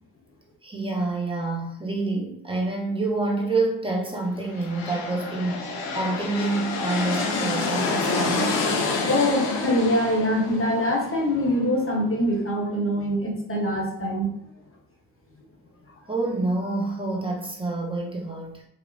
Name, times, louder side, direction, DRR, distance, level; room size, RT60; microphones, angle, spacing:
voice 1, 0.6-5.7 5.9-8.5 16.1-18.6, right 2 dB, 15° right, -1 dB, 0.8 m, -27 dB
sound 1, 4.4-12.1, left 3 dB, 85° left, 0.6 m, -28 dB
voice 2, 9.0-14.3, equal, 30° left, 0 dB, 1.0 m, -24 dB
2.8 x 2.0 x 2.6 m, 0.72 s
supercardioid pair, 40°, 42 cm